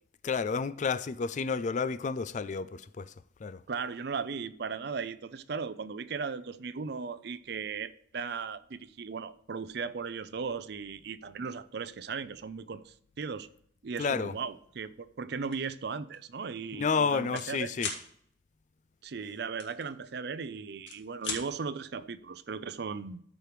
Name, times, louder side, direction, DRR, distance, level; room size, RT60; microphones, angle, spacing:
voice 1, 0.2-3.1 3.4-3.6 14.0-14.3 16.8-17.9, left 5 dB, 40° left, 0.4 m, -30 dB
voice 2, 3.7-13.5 13.8-17.7 19.0-23.2, right 5 dB, 60° right, 0.5 m, -37 dB
sound 1, 15.4-15.7 16.1-16.3 16.6-17.5 17.8-18.0 19.6-20.4 20.7-21.4, left 4 dB, 75° left, 1.8 m, -37 dB
13.5 x 4.9 x 3.1 m
head